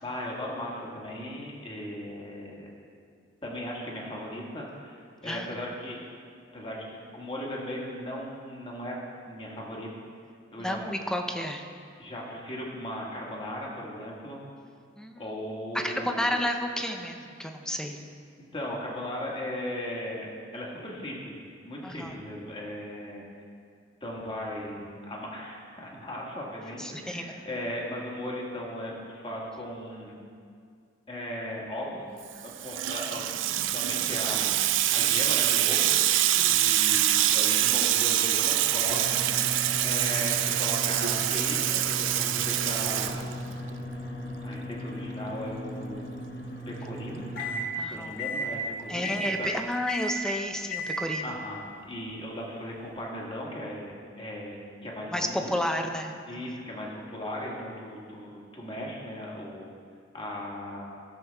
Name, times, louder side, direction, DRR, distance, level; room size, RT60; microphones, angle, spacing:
voice 1, 0.0-2.7 3.4-6.0 6.5-9.0 9.2-9.9 10.5-10.8 12.0-14.4 15.2-16.4 18.5-23.2 24.0-30.2 31.1-32.0 32.4-33.3 33.7-35.9 36.4-39.6 39.8-43.4 44.4-46.3 46.7-47.3 47.9-49.5 51.2-55.6 56.3-59.7 60.1-60.8, left 1 dB, 30° left, -3 dB, 1.7 m, -37 dB
voice 2, 10.6-11.6 15.0-15.3 15.7-18.0 21.8-22.1 26.8-27.5 36.3-36.7 47.8-48.1 48.9-51.3 55.1-56.4, left 1 dB, 5° left, 4 dB, 0.6 m, -31 dB
Water tap faucet / Sink (filling or washing), 32.3-43.7, right 12 dB, 85° right, 0.4 m, -25 dB
sound 1, 38.8-47.7 48.2-48.5 49.0-49.4 49.9-50.2 50.7-51.0, equal, 60° left, 1.9 m, -36 dB
15.0 x 7.0 x 3.5 m, 2.3 s
head